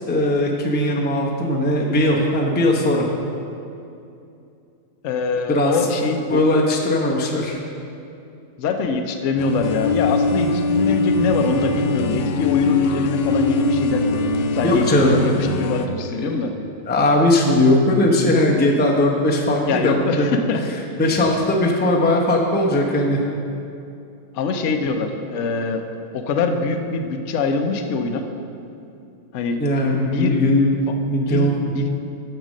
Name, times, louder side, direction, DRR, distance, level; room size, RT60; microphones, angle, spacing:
voice 1, 0.1-3.1 5.5-5.8 6.3-7.6 14.6-15.2 16.2-16.3 16.9-20.3 20.7-23.2 29.6-31.5, left 1 dB, 10° left, -1 dB, 0.5 m, -19 dB
voice 2, 5.0-6.4 8.6-14.1 14.5-16.5 19.6-20.6 24.3-25.8 26.1-28.2 29.3-29.6 29.9-30.3 30.9-31.9, left 4 dB, 60° left, 5 dB, 0.8 m, -23 dB
sound 1, 9.4-15.9, left 3 dB, 85° left, 1.2 m, -22 dB
7.7 x 6.7 x 6.4 m, 2.6 s
omnidirectional pair, 1.9 m